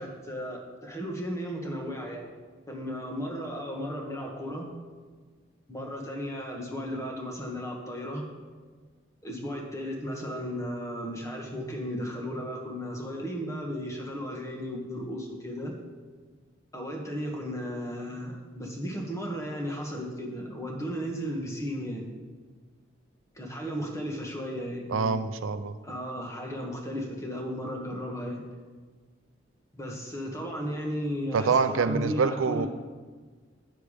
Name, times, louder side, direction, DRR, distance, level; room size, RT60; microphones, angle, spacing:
voice 1, 0.0-2.3 2.7-4.7 5.7-8.2 9.2-15.7 16.7-22.1 23.3-25.2 25.8-28.4 29.7-32.7, equal, 15° left, 0 dB, 1.4 m, -35 dB
voice 2, 24.9-25.7 31.3-32.7, right 5 dB, 80° right, 11 dB, 0.5 m, -25 dB
9.0 x 7.0 x 5.0 m, 1.5 s
head